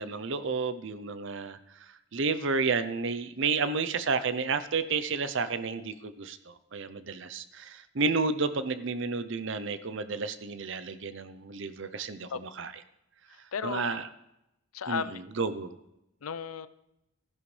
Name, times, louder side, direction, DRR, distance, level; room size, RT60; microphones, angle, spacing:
voice 1, 0.0-1.6 2.1-12.7 13.6-14.1 14.9-15.7, right 4 dB, 60° right, 13 dB, 0.6 m, -31 dB
voice 2, 13.5-13.9 14.7-15.2 16.2-16.7, left 6 dB, 85° left, 15 dB, 0.5 m, -34 dB
15.0 x 10.5 x 3.3 m, 0.88 s
head